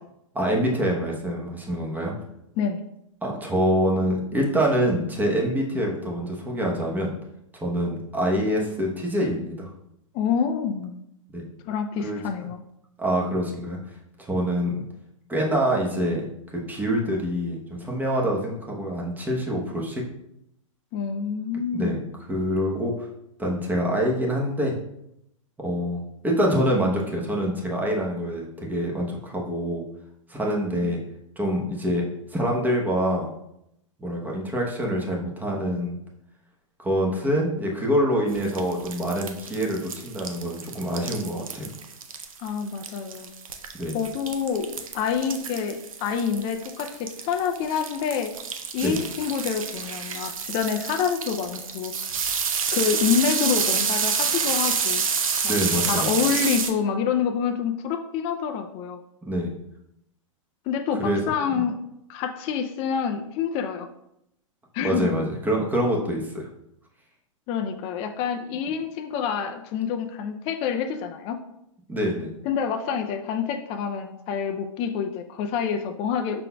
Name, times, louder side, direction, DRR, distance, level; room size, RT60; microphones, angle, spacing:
voice 1, 0.3-2.1 3.2-7.1 7.5-9.7 11.3-11.4 12.0-12.2 13.0-13.8 14.3-14.8 15.3-16.2 16.5-20.0 21.7-22.0 22.3-23.1 23.4-24.7 25.6-29.8 30.3-31.0 31.4-32.0 32.3-33.3 34.0-36.0 36.8-41.7 43.8-44.0 48.8-49.0 55.5-56.1 59.3-59.5 61.0-61.2 61.5-61.6 64.8-66.5 71.9-72.3, equal, 10° right, -1 dB, 0.9 m, -25 dB
voice 2, 10.1-11.0 11.7-12.6 20.9-22.0 30.5-30.8 42.4-43.3 43.9-48.3 48.7-51.9 52.7-55.0 55.4-55.5 55.9-59.0 60.7-61.8 62.1-63.9 64.7-65.1 67.5-71.4 72.5-76.4, left 7 dB, 35° left, 5 dB, 0.4 m, -27 dB
sound 1, 38.3-56.7, right 6 dB, 90° right, 0.6 m, -29 dB
5.6 x 3.8 x 2.2 m, 0.80 s
hypercardioid pair, 125°, 17 cm